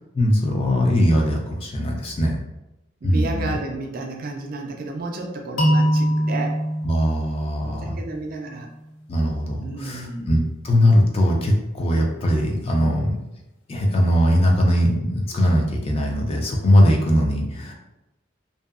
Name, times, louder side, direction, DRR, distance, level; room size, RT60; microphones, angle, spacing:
voice 1, 0.1-2.4 3.0-3.6 6.8-8.0 9.1-13.2 13.7-17.7, equal, 30° left, 1 dB, 0.3 m, -20 dB
voice 2, 3.0-6.6 7.8-8.7 9.6-10.3, right 2 dB, 45° right, 1 dB, 0.4 m, -31 dB
sound 1, 5.6-8.5, equal, 75° left, 0.5 m, -23 dB
2.7 x 2.2 x 2.4 m, 0.94 s
head